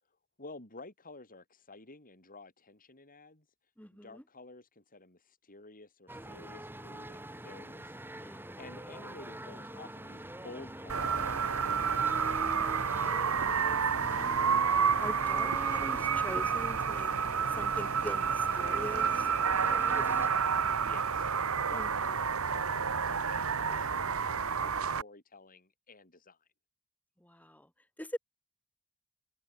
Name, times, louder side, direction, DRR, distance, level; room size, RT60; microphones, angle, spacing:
voice 1, 0.4-3.4 3.9-12.5 20.7-26.5, left 2 dB, 40° left, 6.4 m, -52 dB
voice 2, 3.8-4.2 8.1-8.6 12.5-14.7 15.0-20.1 21.7-21.9 27.2-27.7 28.0-28.2, left 1 dB, 5° left, 2.5 m, -44 dB
sound 1, 6.1-20.3, right 1 dB, 10° right, 7.4 m, -44 dB
sound 2, 10.9-25.0, right 6 dB, 65° right, 1.5 m, -30 dB
head